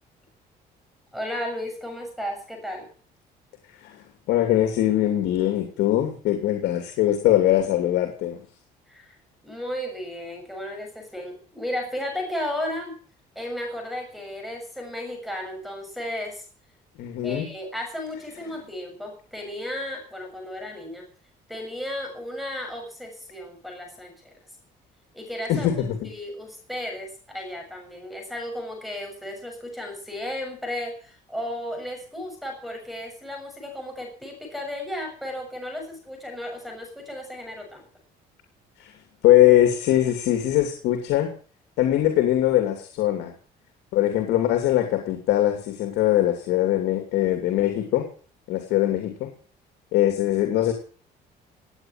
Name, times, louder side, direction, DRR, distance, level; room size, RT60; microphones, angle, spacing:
voice 1, 1.1-2.9 8.9-9.1 9.4-12.9 13.3-16.4 17.2-21.0 21.5-24.1 25.1-37.8, left 1 dB, ahead, 3 dB, 6.7 m, -34 dB
voice 2, 4.3-8.4 17.0-17.5 25.5-26.1 38.8-38.9 39.2-41.3 41.8-43.3 43.9-48.0 48.5-49.3 49.9-50.7, left 13 dB, 85° left, 5 dB, 2.8 m, -21 dB
18.5 x 9.1 x 7.4 m, 0.43 s
cardioid pair, 110°, 17 cm